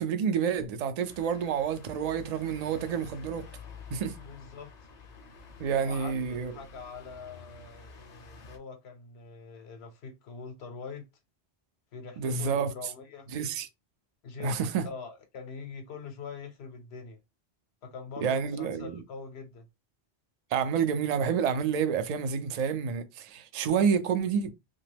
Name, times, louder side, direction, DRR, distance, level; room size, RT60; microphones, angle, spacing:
voice 1, 0.0-3.5 3.9-4.2 5.6-6.5 12.2-12.7 13.3-13.7 14.4-14.9 18.2-19.0 20.5-24.5, right 6 dB, 60° right, 0.4 m, -29 dB
sound 1, 1.1-8.6, left 5 dB, 50° left, 0.6 m, -49 dB
voice 2, 4.2-4.7 5.8-11.1 11.9-13.3 14.2-17.2 17.8-19.7, left 5 dB, 75° left, 0.8 m, -43 dB
2.8 x 2.2 x 3.3 m
omnidirectional pair, 1.1 m